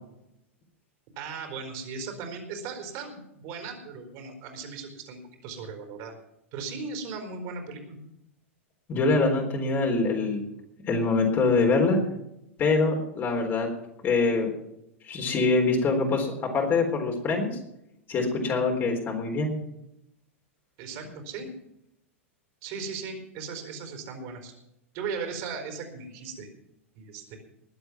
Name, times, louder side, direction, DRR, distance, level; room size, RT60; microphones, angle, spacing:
voice 1, 1.2-6.1 6.5-8.0 20.8-21.5 22.6-24.5 24.9-26.5 26.9-27.4, right 5 dB, 45° right, 4 dB, 4.2 m, -37 dB
voice 2, 8.9-10.4 10.9-12.0 12.6-13.7 14.0-14.5 15.0-16.3 16.5-17.5 18.1-19.5, left 3 dB, 30° left, 1 dB, 3.9 m, -24 dB
20.5 x 8.0 x 6.1 m, 0.84 s
figure-of-eight pair, 95°, 7 cm